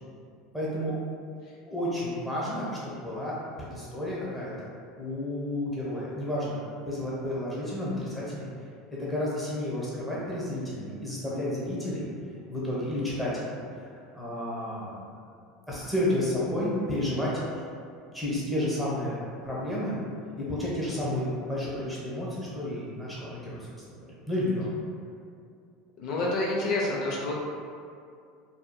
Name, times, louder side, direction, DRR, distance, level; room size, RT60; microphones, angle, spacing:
voice 1, 0.5-1.0 1.7-4.7 5.0-6.6 6.8-8.5 9.0-12.1 12.5-13.5 14.1-15.0 15.7-17.4 18.1-19.2 19.4-20.0 20.4-23.7 24.3-24.7, left 1 dB, 5° left, -8 dB, 0.8 m, -31 dB
voice 2, 26.0-27.4, left 2 dB, 60° left, -3 dB, 0.4 m, -28 dB
2.7 x 2.3 x 2.2 m, 2.3 s
supercardioid pair, 115°, 0 cm